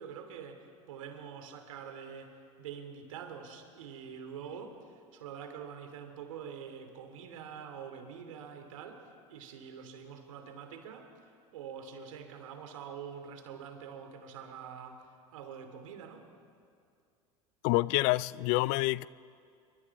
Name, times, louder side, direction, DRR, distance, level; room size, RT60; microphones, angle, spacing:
voice 1, 0.0-11.1 11.5-16.3, right 7 dB, 80° right, 2.8 m, -45 dB
voice 2, 17.6-19.1, left 21 dB, 60° left, 0.5 m, -27 dB
27.0 x 24.0 x 4.7 m
hypercardioid pair, 85°, 17 cm